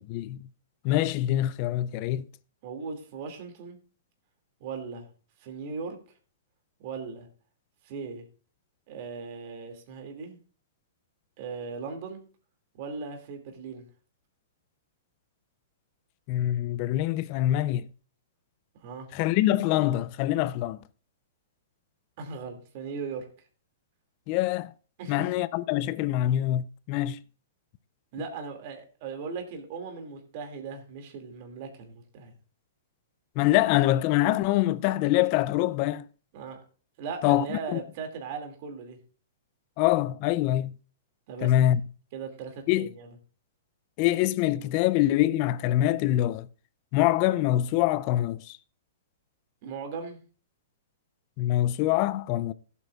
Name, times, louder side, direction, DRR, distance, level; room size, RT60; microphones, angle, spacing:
voice 1, 0.1-0.5 0.8-2.3 16.3-17.9 19.1-20.8 24.3-24.7 25.1-27.2 33.4-36.0 37.2-37.5 37.7-37.8 39.8-40.7 41.4-41.8 42.7-42.9 44.0-46.5 46.9-48.6 51.4-52.5, left 14 dB, 40° left, 0.5 m, -24 dB
voice 2, 2.6-3.8 4.6-5.1 5.4-6.0 6.8-7.3 7.8-8.2 8.9-10.4 11.4-12.2 12.7-13.9 18.7-19.1 22.2-23.3 25.0-25.3 28.1-32.3 36.3-36.6 37.0-39.0 41.3-41.5 42.1-43.1 49.6-50.2, right 5 dB, 50° right, 2.5 m, -38 dB
15.5 x 8.2 x 2.4 m
hypercardioid pair, 140°, 0 cm